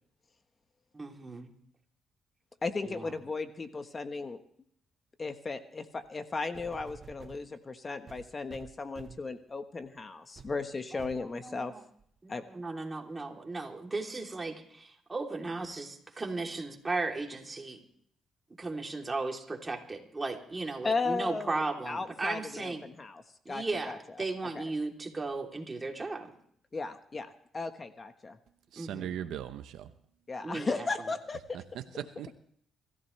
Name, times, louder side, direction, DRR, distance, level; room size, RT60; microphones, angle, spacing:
voice 1, 0.9-1.5 2.8-3.2 10.9-11.8 12.2-17.8 18.6-22.8 23.4-26.3 28.8-29.1 30.4-31.1, right 3 dB, 20° right, 1 dB, 3.2 m, -36 dB
voice 2, 2.6-4.4 5.2-11.7 12.3-12.4 20.8-24.0 24.5-24.6 26.7-28.4 30.3-31.6, left 3 dB, 30° left, 9 dB, 1.3 m, -36 dB
sound 1, 6.0-6.1 6.5-7.4 8.1-9.3 9.8-10.0 10.4-10.6 11.0-11.3 12.0-12.1, right 6 dB, 45° right, 1.0 m, -50 dB
voice 3, 28.7-29.9 31.5-32.3, right 10 dB, 80° right, 10 dB, 0.9 m, -39 dB
25.0 x 15.0 x 3.3 m, 0.65 s
cardioid pair, 90°, 0 cm